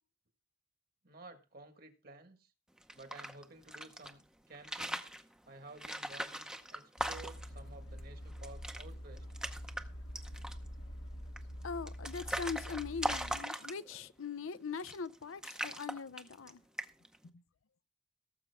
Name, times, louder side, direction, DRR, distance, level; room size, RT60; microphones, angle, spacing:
voice 1, 1.0-2.5 2.9-5.0 5.5-9.2, right 2 dB, 45° right, 1.6 m, -53 dB
sound 1, 2.8-4.1 4.5-5.2 5.8-7.6 8.0-8.1 8.3-8.8 9.2-9.8 10.2-10.7 11.4-14.1 14.7-15.2 15.4-16.5 16.8-17.2, right 1 dB, 5° right, 0.7 m, -40 dB
sound 2, 7.0-13.4, equal, 70° left, 1.2 m, -46 dB
voice 2, 11.6-16.6 17.2-17.4, left 5 dB, 85° left, 0.6 m, -41 dB
18.0 x 7.5 x 3.5 m
head